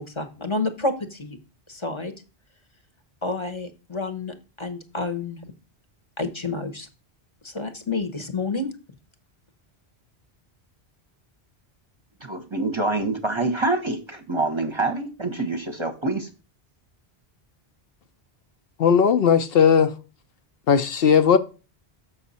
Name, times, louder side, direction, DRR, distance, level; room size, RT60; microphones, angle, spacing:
voice 1, 0.0-1.4 1.7-2.1 3.2-5.4 6.2-6.9 7.4-8.7, left 3 dB, 30° left, 0.9 m, -29 dB
voice 2, 12.2-16.3, right 2 dB, 30° right, 0.8 m, -26 dB
voice 3, 18.8-19.9 20.7-21.4, left 7 dB, 70° left, 0.8 m, -17 dB
7.0 x 5.6 x 4.1 m
omnidirectional pair, 1.1 m